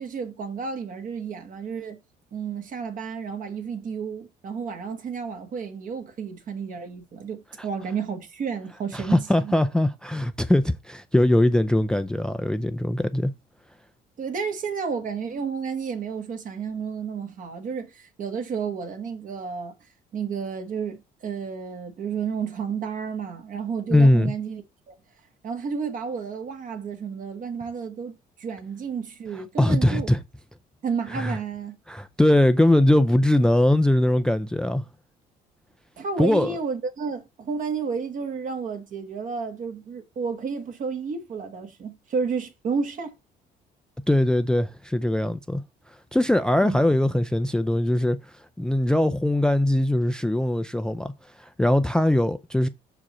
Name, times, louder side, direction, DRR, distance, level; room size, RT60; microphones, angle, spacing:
voice 1, 0.0-2.0 2.3-9.5 14.2-19.7 20.1-24.9 25.4-30.1 30.8-31.8 36.0-43.1 46.6-46.8, right 6 dB, 50° right, 1.4 m, -31 dB
voice 2, 8.9-13.3 23.9-24.3 29.6-30.2 31.1-31.4 31.9-34.8 36.2-36.6 44.1-45.6 46.1-52.7, left 1 dB, 5° left, 0.4 m, -21 dB
6.0 x 5.0 x 4.2 m
cardioid pair, 110°, 17 cm